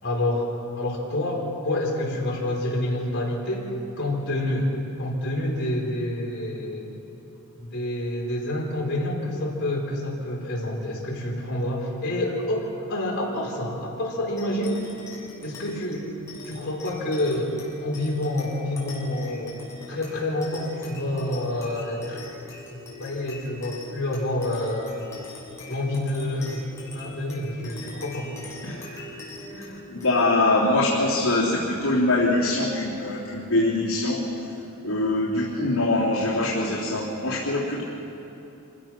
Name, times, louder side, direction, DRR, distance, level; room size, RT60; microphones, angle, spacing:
voice 1, 0.0-0.5 0.7-3.7 4.0-4.7 5.0-6.9 7.5-14.8 15.4-16.1 16.4-19.6 19.9-22.3 22.7-25.1 25.7-26.6 26.9-28.4, left 1 dB, 50° left, -4 dB, 5.1 m, -28 dB
sound 1, 14.4-33.2, left 2 dB, 15° left, 6.0 m, -43 dB
voice 2, 28.6-29.0 29.5-34.2 34.8-37.8, left 2 dB, 75° left, -8 dB, 3.4 m, -23 dB
27.0 x 16.5 x 6.2 m, 2.8 s
head